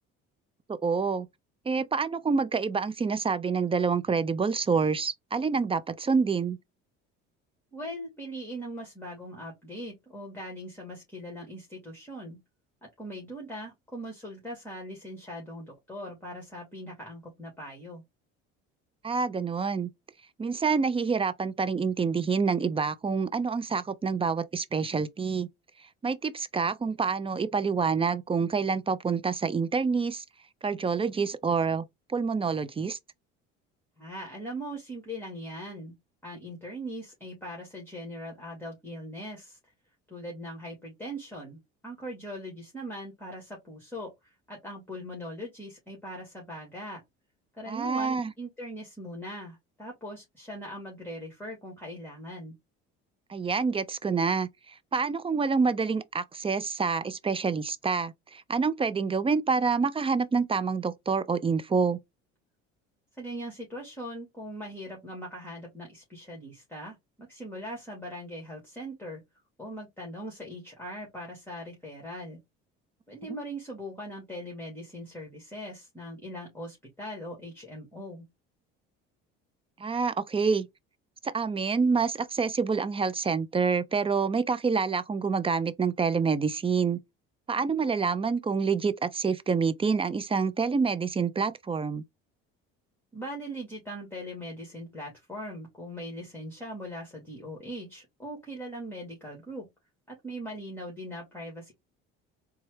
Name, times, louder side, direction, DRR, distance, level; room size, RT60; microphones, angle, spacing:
voice 1, 0.7-1.3 1.7-6.6 19.0-19.9 20.4-25.5 26.0-30.2 30.6-31.8 32.1-33.0 47.7-48.3 53.3-54.5 54.9-62.0 79.8-80.7 81.2-87.0 87.5-92.0, right 5 dB, 20° right, 0.5 m, -27 dB
voice 2, 7.7-12.4 12.8-18.0 34.0-35.9 36.2-39.6 40.1-47.0 47.5-52.6 63.2-69.2 69.6-72.4 73.1-78.2 93.1-99.7 100.1-101.7, equal, 5° left, 1.9 m, -40 dB
3.9 x 2.3 x 3.2 m
supercardioid pair, 80°, 29 cm